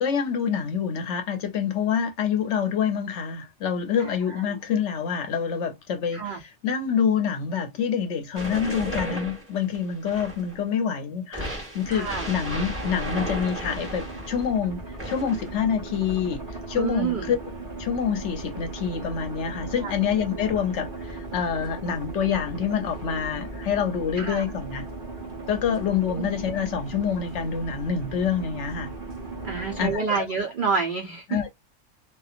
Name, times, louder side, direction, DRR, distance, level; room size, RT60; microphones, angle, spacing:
voice 1, 0.0-17.4 17.8-24.9 25.5-28.9 29.8-30.3 31.3-31.5, left 7 dB, 65° left, 0.8 m, -27 dB
sound 1, 8.3-10.6 11.3-14.5 15.0-15.6, equal, 10° right, 1.0 m, -34 dB
sound 2, 11.8-30.0, right 2 dB, 40° right, 1.1 m, -37 dB
voice 2, 11.9-12.3 16.8-17.3 19.8-19.9 24.2-24.4 26.1-26.3 29.4-31.2, right 5 dB, 70° right, 0.4 m, -28 dB
2.7 x 2.4 x 2.4 m
omnidirectional pair, 1.4 m